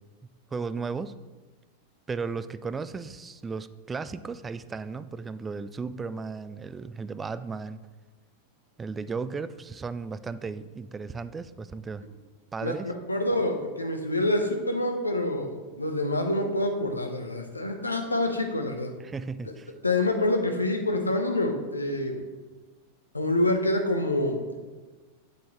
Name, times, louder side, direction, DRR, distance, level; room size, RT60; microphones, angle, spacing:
voice 1, 0.5-1.1 2.1-7.8 8.8-12.1 12.5-12.9 19.0-19.7, right 4 dB, 15° right, 14 dB, 0.3 m, -35 dB
voice 2, 12.6-18.9 19.8-22.2 23.1-24.4, left 1 dB, 80° left, 5 dB, 0.9 m, -27 dB
8.5 x 6.9 x 3.2 m, 1.3 s
figure-of-eight pair, 90°, 0 cm